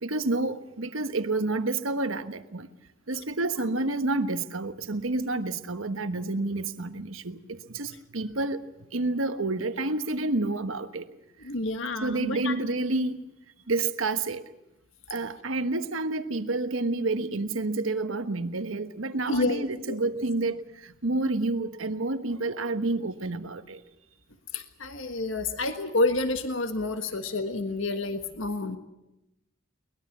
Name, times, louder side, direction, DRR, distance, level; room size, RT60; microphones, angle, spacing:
voice 1, 0.0-2.7 3.1-8.6 8.9-11.0 12.0-13.2 13.7-14.4 15.1-20.6 21.0-23.8, right 2 dB, 85° right, 1.3 m, -29 dB
voice 2, 11.4-12.5 19.3-20.0 24.5-28.8, left 2 dB, 75° left, 1.5 m, -29 dB
23.0 x 20.5 x 7.3 m
head